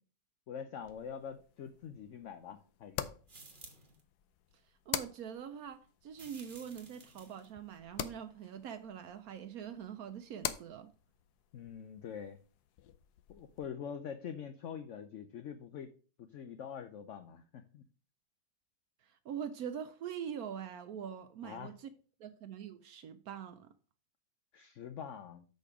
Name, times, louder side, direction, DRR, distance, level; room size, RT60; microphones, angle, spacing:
voice 1, 0.5-3.1 11.5-12.4 13.3-17.8 21.4-21.7 24.5-25.5, left 7 dB, 60° left, 0.8 m, -45 dB
sound 1, 0.8-13.7, left 11 dB, 80° left, 1.1 m, -46 dB
sound 2, 3.3-4.0 6.1-7.5, right 3 dB, 35° right, 1.4 m, -55 dB
voice 2, 4.9-10.9 19.1-21.9 22.2-23.7, right 8 dB, 70° right, 1.0 m, -43 dB
6.5 x 5.3 x 4.9 m
omnidirectional pair, 1.7 m